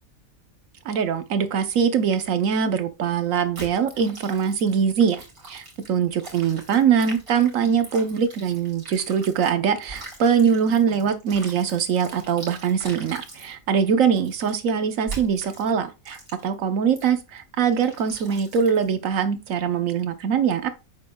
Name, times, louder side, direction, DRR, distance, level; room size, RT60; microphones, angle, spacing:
voice 1, 0.8-20.7, right 7 dB, 70° right, 1.2 m, -22 dB
sound 1, 3.6-9.5 9.8-13.5 14.2-14.5 15.1-15.7 16.1-16.5 17.0-17.2 17.7-18.9, right 3 dB, 90° right, 3.5 m, -42 dB
8.5 x 6.6 x 2.3 m
omnidirectional pair, 1.5 m